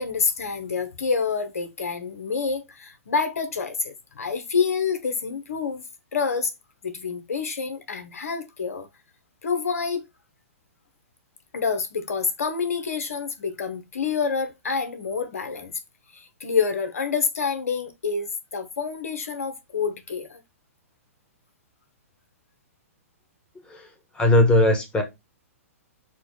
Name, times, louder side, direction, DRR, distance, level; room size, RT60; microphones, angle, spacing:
voice 1, 0.0-5.8 6.1-6.5 6.8-8.9 9.4-10.1 11.5-15.7 16.1-20.4, left 5 dB, 80° left, 1.0 m, -27 dB
voice 2, 24.2-25.0, left 1 dB, 15° left, 1.3 m, -18 dB
4.3 x 2.3 x 3.7 m
hypercardioid pair, 125°, 8 cm